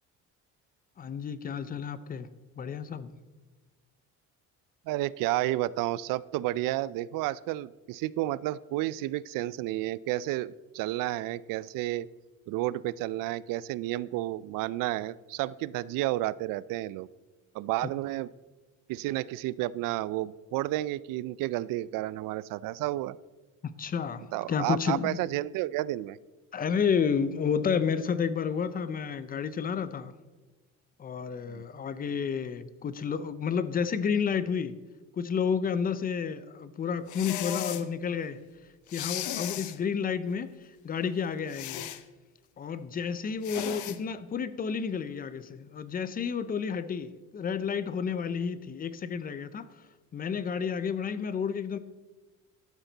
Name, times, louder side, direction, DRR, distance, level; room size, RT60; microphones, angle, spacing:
voice 1, 1.0-2.3 2.6-3.1 23.6-25.2 26.5-30.1 31.0-34.8 35.1-38.4 38.9-41.9 42.6-49.7 50.1-51.8, left 6 dB, 30° left, 0.6 m, -31 dB
voice 2, 4.9-12.1 12.5-17.1 17.5-18.3 18.9-23.2 24.3-26.2 31.5-31.6 43.5-43.8, right 16 dB, 85° right, 0.5 m, -31 dB
sound 1, 37.1-37.9 38.9-39.8 41.5-42.0 43.4-44.0, left 12 dB, 65° left, 0.8 m, -35 dB
12.5 x 12.0 x 4.0 m
cardioid pair, 155°, 32 cm